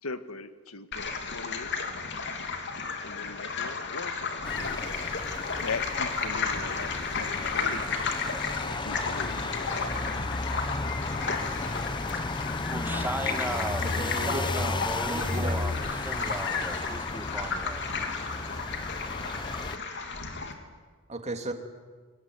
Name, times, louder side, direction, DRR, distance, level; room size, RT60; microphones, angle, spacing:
voice 1, 0.0-1.7 3.0-4.8 5.6-8.1 8.6-9.9, left 4 dB, 90° left, 10 dB, 1.6 m, -40 dB
sound 1, 0.9-20.5, left 4 dB, 55° left, 3.0 m, -33 dB
sound 2, 4.4-19.8, left 3 dB, 20° left, 0.8 m, -34 dB
voice 2, 12.7-18.2, right 1 dB, 10° right, 7 dB, 1.8 m, -37 dB
voice 3, 13.8-14.7 15.1-15.6 21.1-21.5, right 1 dB, 30° right, 5 dB, 2.7 m, -34 dB
25.0 x 24.0 x 9.5 m, 1.4 s
head